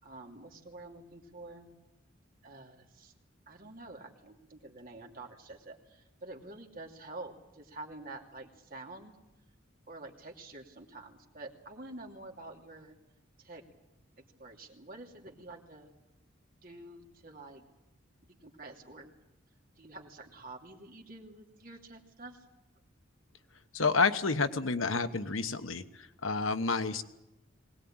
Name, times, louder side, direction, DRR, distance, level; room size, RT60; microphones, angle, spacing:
voice 1, 0.0-1.7 2.4-3.1 3.5-9.2 9.9-12.9 13.4-13.6 14.4-15.9 16.6-17.7 18.2-19.1 19.8-22.5, right 2 dB, 45° right, 1 dB, 2.7 m, -48 dB
voice 2, 23.7-27.0, left 4 dB, 80° left, 9 dB, 1.2 m, -29 dB
21.5 x 18.5 x 8.8 m, 0.94 s
head